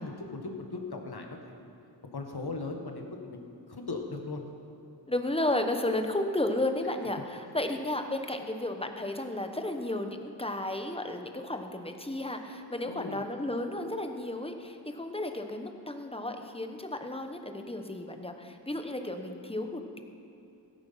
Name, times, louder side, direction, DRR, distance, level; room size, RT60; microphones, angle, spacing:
voice 1, 0.0-1.7 2.1-4.5 12.8-13.2, left 3 dB, 60° left, 2 dB, 1.8 m, -38 dB
voice 2, 5.1-20.0, left 1 dB, 15° left, 5 dB, 1.2 m, -33 dB
16.0 x 9.3 x 5.8 m, 2.7 s
wide cardioid pair, 60°, 43 cm